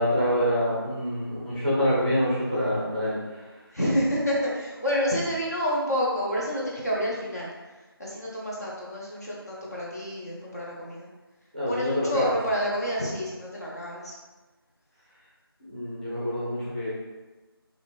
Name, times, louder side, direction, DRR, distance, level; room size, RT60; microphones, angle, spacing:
voice 1, 0.0-3.2 11.5-12.3 15.7-16.9, equal, 20° right, -10 dB, 0.6 m, -26 dB
voice 2, 3.7-7.5 8.0-11.1 11.7-14.1, equal, 40° left, -6 dB, 0.7 m, -28 dB
3.3 x 2.5 x 2.5 m, 1.2 s
figure-of-eight pair, 175°, 13 cm